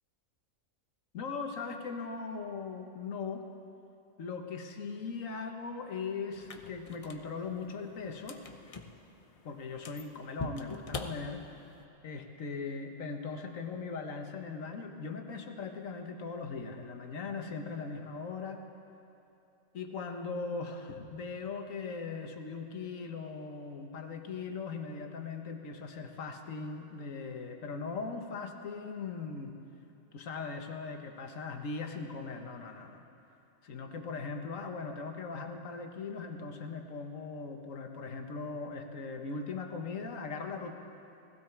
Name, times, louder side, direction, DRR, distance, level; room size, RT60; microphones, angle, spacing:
voice 1, 1.1-3.5 4.2-8.4 9.4-11.5 12.0-18.6 19.7-29.5 30.1-33.0 33.6-40.7, left 4 dB, 70° left, 4 dB, 1.5 m, -39 dB
sound 1, 6.3-11.8, left 3 dB, 35° left, 0.6 m, -45 dB
19.0 x 16.0 x 4.5 m, 2.8 s
omnidirectional pair, 1.4 m